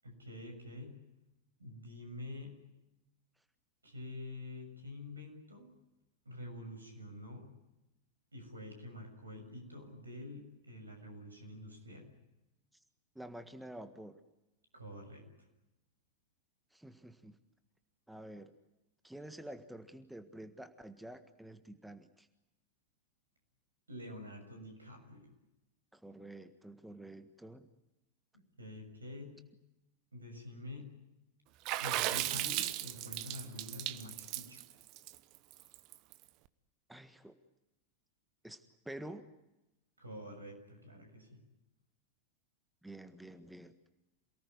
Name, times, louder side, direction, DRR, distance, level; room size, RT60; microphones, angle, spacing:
voice 1, 0.0-1.0 1.6-2.6 3.8-5.7 6.3-7.5 8.3-12.1 14.7-15.3 23.9-25.3 28.3-29.4 30.1-30.9 31.8-34.6 40.0-41.4, left 1 dB, 80° right, 5 dB, 6.9 m, -47 dB
voice 2, 13.1-14.2 16.7-17.4 18.1-18.5 19.0-22.3 25.9-27.7 36.9-37.4 38.4-39.3 42.8-43.7, right 1 dB, 5° right, 9 dB, 1.6 m, -49 dB
Water / Splash splatter, 31.7-36.1, right 16 dB, 40° right, 1.1 m, -36 dB
28.0 x 19.0 x 9.5 m, 0.95 s
figure-of-eight pair, 90°, 0 cm